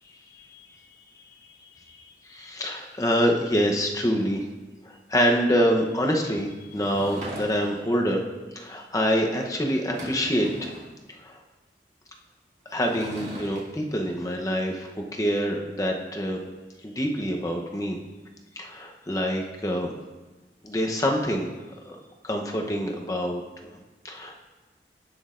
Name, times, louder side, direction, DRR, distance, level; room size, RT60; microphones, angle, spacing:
voice 1, 2.3-4.5 5.1-8.2 8.5-10.7 11.2-11.4 12.7-16.4 16.8-18.0 18.6-19.9 20.6-21.5 21.9-22.0 22.2-23.7 24.0-24.3, equal, 20° left, 1 dB, 0.8 m, -26 dB
Sliding door / Wood, 6.7-7.9 9.4-9.5 9.8-10.9 12.7-13.6, right 1 dB, 45° right, 2.1 m, -40 dB
17.0 x 6.2 x 2.5 m, 1.2 s
head